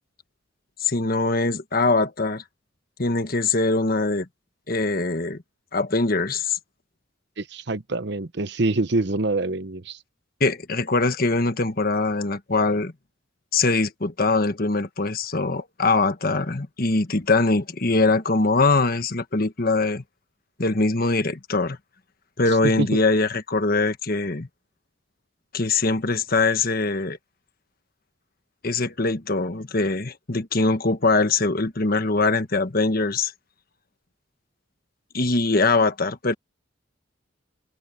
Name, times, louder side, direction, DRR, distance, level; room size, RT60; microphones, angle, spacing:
voice 1, 0.8-2.4 3.0-4.3 4.7-5.4 5.7-6.6 10.4-12.9 13.5-20.0 20.6-21.8 22.4-24.5 25.5-27.2 28.6-33.3 35.1-36.3, left 3 dB, 45° left, 1.5 m, -22 dB
voice 2, 7.4-10.0 22.6-23.0, right 2 dB, 60° right, 0.9 m, -25 dB
head